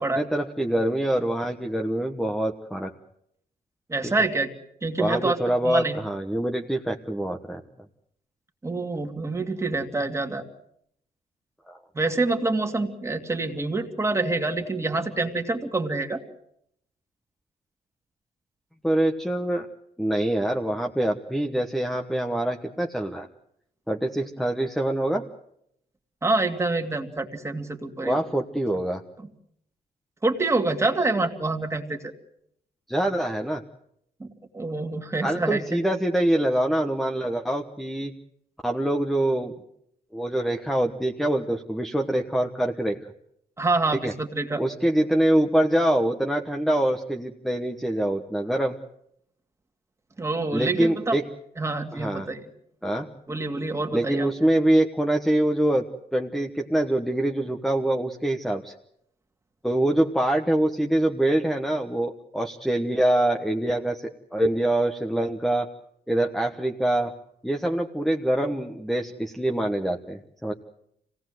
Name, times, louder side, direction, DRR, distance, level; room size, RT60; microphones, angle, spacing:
voice 1, 0.1-2.9 5.0-7.6 11.7-11.8 18.8-19.7 20.0-23.3 23.9-25.2 28.0-29.0 32.9-33.6 35.2-38.1 38.6-39.5 40.1-43.0 44.0-44.1 44.6-48.8 50.5-51.2 51.9-52.3 52.8-53.1 53.9-55.8 56.1-58.7 59.6-65.7 66.1-67.1 67.4-70.5, right 1 dB, ahead, 3 dB, 1.3 m, -24 dB
voice 2, 3.9-4.5 4.8-5.4 5.6-6.0 8.6-10.4 11.9-16.2 26.2-28.2 30.2-32.1 34.2-34.3 34.5-35.8 43.6-44.6 50.2-51.2 51.6-52.4 53.3-54.3, right 3 dB, 20° right, 5 dB, 2.4 m, -26 dB
25.5 x 18.0 x 7.8 m, 0.73 s
cardioid pair, 115°, 16 cm